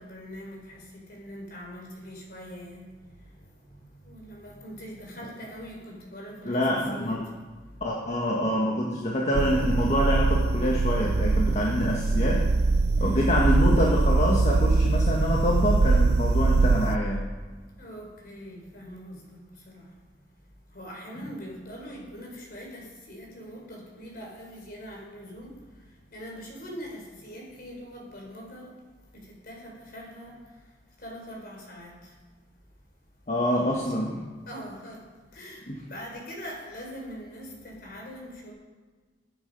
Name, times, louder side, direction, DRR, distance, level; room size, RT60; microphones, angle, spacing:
voice 1, 0.0-2.9 3.8-7.2 12.9-13.4 17.8-19.4 19.7-19.8 20.7-25.5 26.1-28.7 29.1-30.3 31.0-31.9 33.7-34.1 34.5-35.0 35.3-35.6 35.9-38.5, equal, 55° left, -1 dB, 4.3 m, -42 dB
voice 2, 6.4-7.3 7.8-12.5 13.0-17.3 21.2-21.3 33.3-34.2 35.7-35.8, left 1 dB, 40° left, -2 dB, 1.7 m, -26 dB
sound 1, 9.3-17.0, right 3 dB, 60° right, 0.5 m, -23 dB
21.0 x 9.0 x 5.4 m, 1.4 s
head